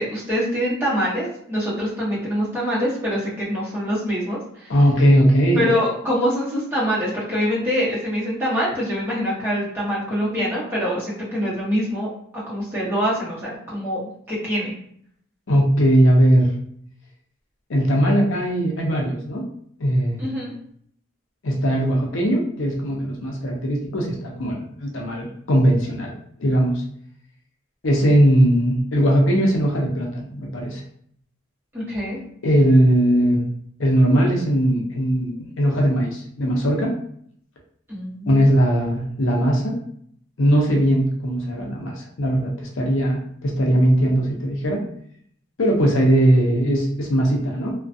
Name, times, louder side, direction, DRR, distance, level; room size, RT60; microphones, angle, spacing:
voice 1, 0.0-4.7 5.6-12.1 12.5-14.0 14.3-14.7 20.2-20.6 31.7-32.2 37.9-38.4, equal, 10° right, -8 dB, 0.9 m, -24 dB
voice 2, 4.7-5.7 15.5-16.5 17.7-19.4 19.8-20.2 21.4-26.8 27.8-30.8 32.4-33.4 33.8-36.9 38.3-39.8 40.4-44.8 45.6-47.7, equal, 70° left, -1 dB, 0.6 m, -19 dB
2.4 x 2.1 x 2.5 m, 0.64 s
head